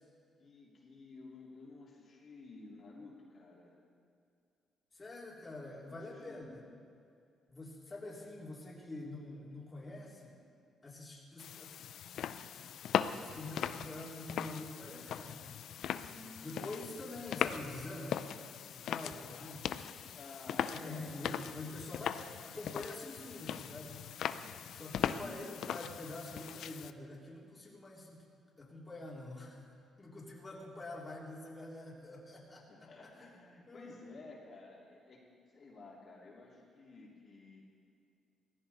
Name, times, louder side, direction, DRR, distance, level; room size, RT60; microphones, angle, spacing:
voice 1, 0.4-3.7 5.9-6.6 16.0-17.0 20.1-21.2 24.3-24.6 24.9-25.5 32.7-35.2 35.5-37.6, left 3 dB, 50° left, -4 dB, 3.3 m, -53 dB
voice 2, 4.9-6.6 7.5-10.4 10.8-11.7 13.2-15.5 16.4-18.4 18.7-19.9 20.7-24.0 24.7-28.2 28.6-29.6 30.0-33.4 33.7-34.2, left 2 dB, 25° left, -4 dB, 3.5 m, -46 dB
sound 1, 11.4-26.9, left 9 dB, 75° left, 0.5 m, -39 dB
18.0 x 15.5 x 4.3 m, 2.4 s
cardioid pair, 90°, 0 cm